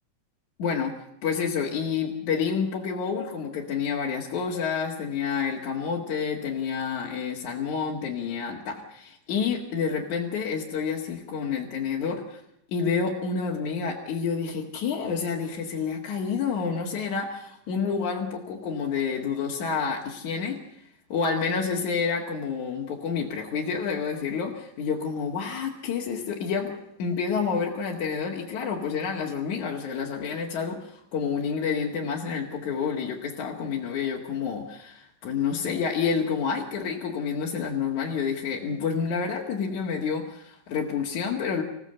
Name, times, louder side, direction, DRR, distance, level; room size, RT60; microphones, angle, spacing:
voice 1, 0.6-12.4 12.7-20.8 21.1-41.6, left 6 dB, 60° left, -1 dB, 3.2 m, -29 dB
26.0 x 16.5 x 7.9 m, 0.79 s
omnidirectional pair, 4.0 m